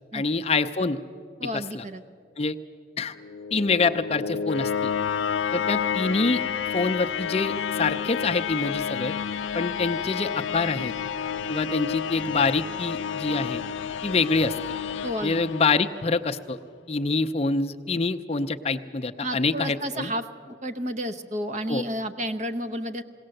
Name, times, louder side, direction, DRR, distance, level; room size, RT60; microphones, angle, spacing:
voice 1, 0.1-1.0 1.5-1.8 2.4-2.6 3.0-3.2 3.5-4.9 5.5-6.4 6.7-9.1 9.5-10.9 11.5-13.6 14.0-14.6 15.2-16.6 16.9-20.1 21.7-21.8, left 3 dB, 30° left, 9 dB, 0.5 m, -26 dB
voice 2, 1.4-2.0 15.0-15.4 19.2-23.0, equal, 35° right, 8 dB, 0.8 m, -31 dB
sound 1, 3.1-16.2, left 7 dB, 85° left, 0.5 m, -30 dB
21.0 x 17.5 x 7.7 m, 2.4 s
head